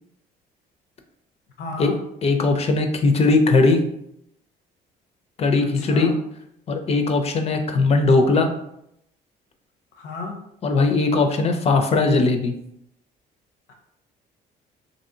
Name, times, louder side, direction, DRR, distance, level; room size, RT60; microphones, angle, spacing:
voice 1, 1.6-2.0 5.8-6.2 9.9-10.4 13.7-13.8, left 3 dB, 80° left, 3 dB, 0.6 m, -32 dB
voice 2, 2.2-3.8 5.4-6.1 6.7-8.5 10.6-12.5, left 3 dB, 40° left, 6 dB, 0.4 m, -19 dB
2.9 x 2.7 x 2.6 m, 0.78 s
cardioid pair, 110°, 17 cm